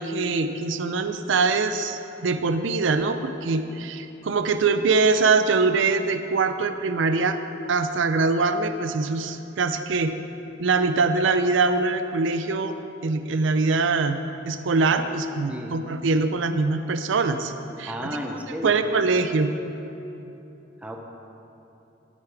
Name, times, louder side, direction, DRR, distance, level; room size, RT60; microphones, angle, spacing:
voice 1, 0.0-7.4 7.7-10.2 10.6-12.7 13.0-14.2 14.5-17.5 17.8-18.1 18.6-19.5, right 4 dB, 80° right, 9 dB, 0.5 m, -23 dB
voice 2, 17.9-18.9 20.8-21.0, equal, 5° right, 2 dB, 0.7 m, -33 dB
9.7 x 8.5 x 4.7 m, 3.0 s
head